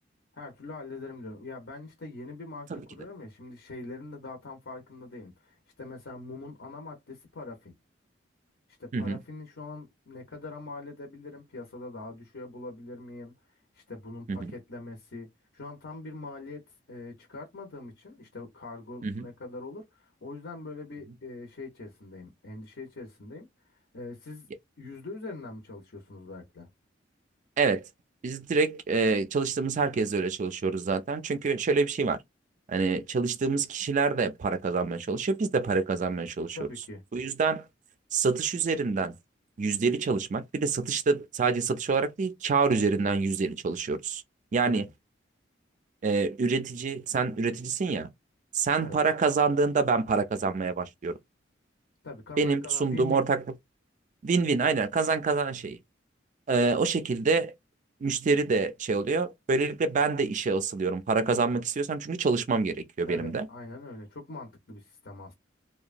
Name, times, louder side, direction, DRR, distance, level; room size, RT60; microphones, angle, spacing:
voice 1, 0.3-7.7 8.8-13.3 13.7-15.3 15.5-23.5 23.9-24.5 24.8-26.7 36.5-37.0 44.6-44.8 48.8-49.0 52.0-53.3 63.1-65.3, left 2 dB, 70° left, 0.8 m, -42 dB
voice 2, 28.2-32.2 32.7-36.6 37.1-37.7 38.1-39.1 39.6-44.2 44.5-44.9 46.0-48.1 48.5-51.1 52.4-53.4 54.2-55.8 56.5-57.5 58.0-63.5, right 4 dB, 40° right, 0.4 m, -26 dB
2.8 x 2.2 x 2.4 m
head